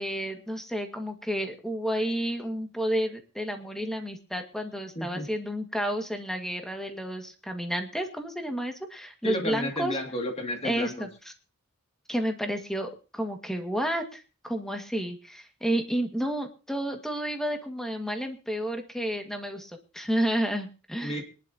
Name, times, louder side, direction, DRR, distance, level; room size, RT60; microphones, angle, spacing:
voice 1, 0.0-10.0 10.6-11.3 12.1-21.2, equal, ahead, 4 dB, 1.8 m, -31 dB
voice 2, 5.0-5.3 9.2-11.1 21.0-21.2, left 1 dB, 30° left, 2 dB, 2.4 m, -32 dB
23.0 x 11.0 x 2.8 m, 0.33 s
head